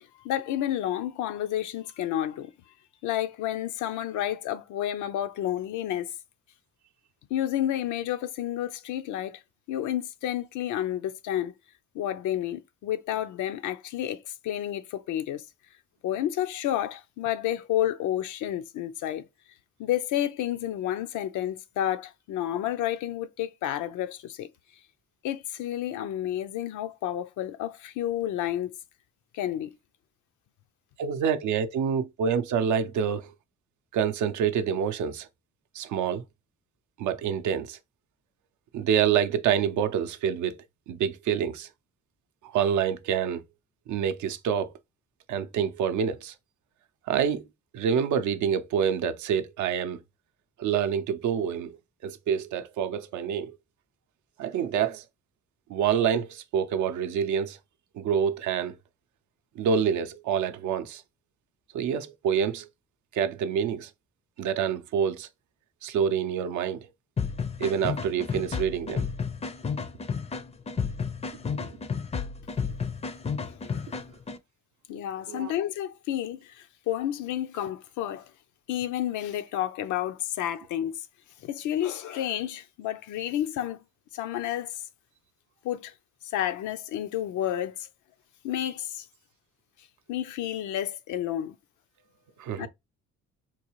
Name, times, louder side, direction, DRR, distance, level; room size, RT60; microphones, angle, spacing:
voice 1, 0.0-2.5 3.0-6.1 7.3-9.4 9.7-11.5 11.9-15.4 16.0-19.2 19.8-24.5 25.2-28.7 29.3-29.8 73.4-73.9 74.9-78.2 78.7-81.1 81.4-83.8 84.1-84.8 85.6-85.9 86.3-87.9 88.4-89.0 90.1-91.6 92.6-92.7, left 12 dB, 80° left, 0.5 m, -30 dB
voice 2, 31.0-33.3 33.9-35.3 35.7-36.2 37.0-37.8 38.7-40.6 40.9-41.7 42.4-43.4 43.9-44.7 45.3-46.3 47.1-47.5 47.7-50.0 50.6-51.8 52.0-53.5 54.4-55.0 55.7-57.6 57.9-58.7 59.6-61.0 61.7-62.7 63.1-63.9 64.4-65.3 65.8-66.9 67.6-69.1 71.5-71.8 75.3-75.5 92.4-92.7, right 8 dB, 75° right, 0.5 m, -27 dB
sound 1, 67.2-74.4, left 6 dB, 20° left, 0.4 m, -32 dB
3.9 x 2.3 x 3.0 m
cardioid pair, 90°, 30 cm